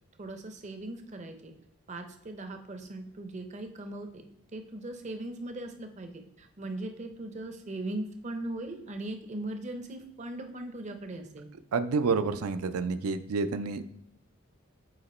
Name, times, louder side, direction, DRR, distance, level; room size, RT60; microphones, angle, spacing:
voice 1, 0.2-1.5 1.9-4.2 4.5-11.5, right 2 dB, 30° right, 6 dB, 0.5 m, -39 dB
voice 2, 11.7-13.8, right 4 dB, 85° right, 11 dB, 0.4 m, -29 dB
7.9 x 2.9 x 4.2 m, 0.77 s
head